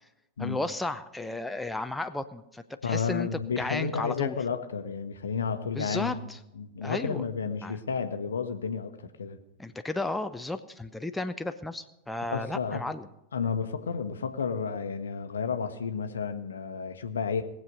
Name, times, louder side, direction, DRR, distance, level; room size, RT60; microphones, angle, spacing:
voice 1, 0.4-3.3 3.6-4.4 5.8-6.4 6.8-7.2 7.6-7.8 9.6-13.1, left 2 dB, 5° left, 0.6 m, -34 dB
voice 2, 2.8-6.3 6.6-9.4 12.3-12.9 13.3-17.4, left 6 dB, 70° left, 1.0 m, -31 dB
20.0 x 7.6 x 5.3 m
figure-of-eight pair, 90°, 0 cm